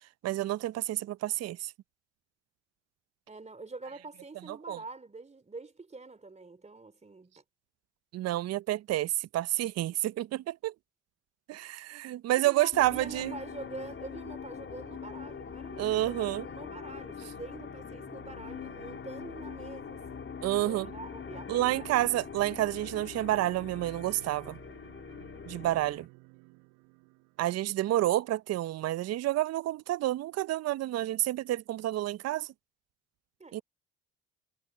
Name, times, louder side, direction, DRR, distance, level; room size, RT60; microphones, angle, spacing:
voice 1, 0.2-1.7 4.5-4.8 8.1-10.7 11.5-13.3 15.8-16.5 20.4-20.9 21.5-24.6 25.5-26.1 27.4-32.5 33.5-33.6, right 15 dB, 55° right, 0.6 m, -29 dB
voice 2, 3.3-7.3 12.4-22.1 33.4-33.6, right 3 dB, 20° right, 3.2 m, -45 dB
sound 1, 12.7-26.1, left 6 dB, 40° left, 3.3 m, -43 dB
sound 2, 17.3-28.3, right 29 dB, 85° right, 7.9 m, -56 dB
supercardioid pair, 65°, 30 cm